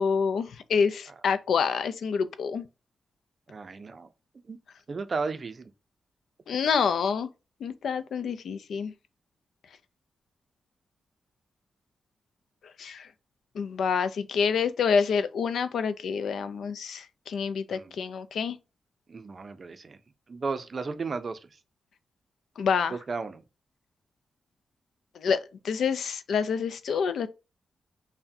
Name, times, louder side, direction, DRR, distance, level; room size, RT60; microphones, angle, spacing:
voice 1, 0.0-2.7 6.5-7.3 7.6-8.9 12.8-13.1 13.5-18.6 22.6-22.9 25.2-25.4 25.6-27.3, left 6 dB, 80° left, 0.4 m, -27 dB
voice 2, 3.5-4.1 4.5-4.6 4.9-5.7 17.7-17.9 19.1-20.0 20.3-21.4 22.9-23.4, right 4 dB, 35° right, 0.4 m, -34 dB
5.7 x 2.1 x 2.6 m
wide cardioid pair, 150°, 0 cm